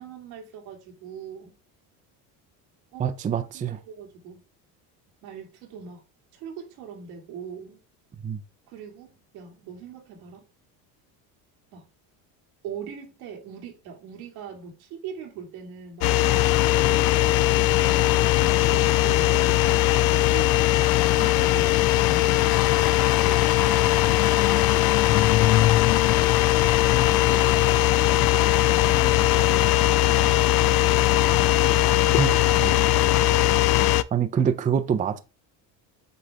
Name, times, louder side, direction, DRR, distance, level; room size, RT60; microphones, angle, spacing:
voice 1, 0.0-1.6 2.9-4.4 5.2-6.0 6.3-7.8 8.7-10.5 11.7-11.9 12.6-16.4 16.8-25.6 26.4-31.2 31.5-33.6, right 7 dB, 90° right, 2.6 m, -42 dB
voice 2, 3.0-3.8 8.2-8.4 32.2-32.3 32.6-32.7 34.1-35.2, right 7 dB, 20° right, 0.4 m, -25 dB
sound 1, 16.0-34.0, left 15 dB, 55° left, 0.5 m, -20 dB
8.1 x 3.3 x 3.6 m
cardioid pair, 115°, 44 cm